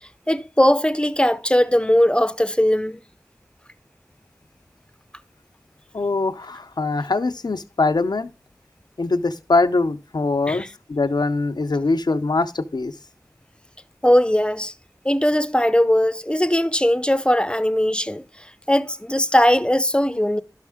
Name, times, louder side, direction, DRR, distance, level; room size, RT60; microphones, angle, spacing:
voice 1, 0.3-3.0 10.5-10.7 14.0-14.7 15.0-18.2 18.7-20.4, equal, 15° left, 0.6 m, -19 dB
voice 2, 5.9-8.3 9.0-12.9, left 3 dB, 85° left, 0.6 m, -22 dB
11.5 x 6.4 x 3.5 m
wide cardioid pair, 45°, 7 cm